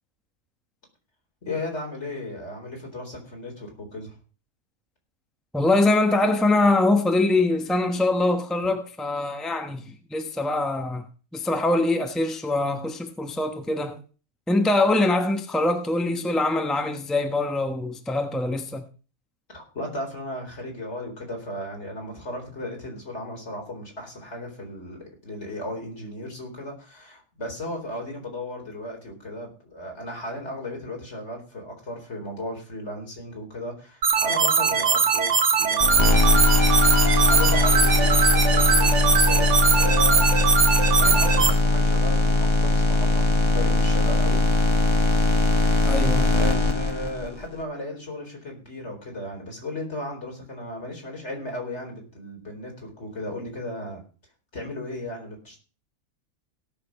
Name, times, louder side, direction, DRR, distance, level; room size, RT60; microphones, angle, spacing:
voice 1, 1.4-4.1 19.5-36.2 37.2-40.3 41.0-44.4 45.6-54.0 54.5-55.6, left 1 dB, 60° left, 4.6 m, -35 dB
voice 2, 5.5-11.0 11.3-14.0 14.5-18.9 45.8-46.3, left 2 dB, ahead, 1.0 m, -23 dB
sound 1, 34.0-41.5, right 5 dB, 65° right, 1.5 m, -21 dB
sound 2, 35.8-47.5, left 2 dB, 20° left, 1.6 m, -20 dB
17.0 x 6.8 x 5.4 m
omnidirectional pair, 1.3 m